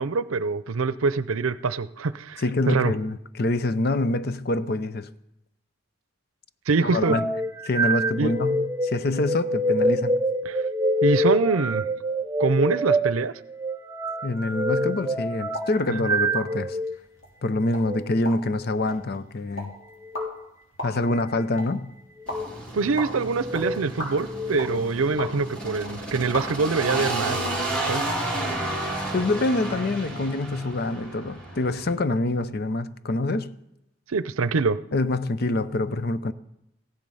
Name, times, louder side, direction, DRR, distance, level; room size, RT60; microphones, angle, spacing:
voice 1, 0.0-2.9 6.7-7.2 8.2-8.3 10.4-10.6 11.0-11.8 12.4-13.3 22.7-27.5 27.9-28.1 34.1-34.8, right 4 dB, 90° right, 0.6 m, -24 dB
voice 2, 2.4-5.1 6.8-7.4 7.6-10.2 14.2-16.8 17.4-19.7 20.8-21.9 29.1-33.6 34.9-36.3, left 2 dB, 50° left, 0.6 m, -26 dB
sound 1, 7.0-17.0 17.7-18.0 20.0-20.3 21.1-21.6 22.2-22.5 23.3-23.8 24.3-25.3, right 1 dB, 15° right, 0.5 m, -26 dB
sound 2, 15.4-27.6, equal, 70° left, 3.9 m, -39 dB
sound 3, 22.3-31.9, right 1 dB, 5° left, 2.5 m, -32 dB
15.5 x 10.5 x 5.5 m
head